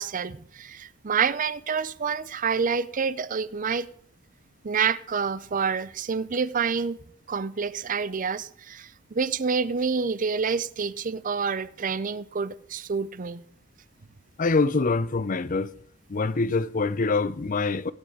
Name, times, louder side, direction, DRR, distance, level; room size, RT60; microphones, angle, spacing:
voice 1, 0.0-3.9 4.6-7.0 7.3-13.4, right 5 dB, 35° right, 0.5 m, -28 dB
voice 2, 14.4-15.7 16.1-17.9, left 3 dB, 35° left, 0.5 m, -25 dB
16.5 x 10.0 x 4.9 m
head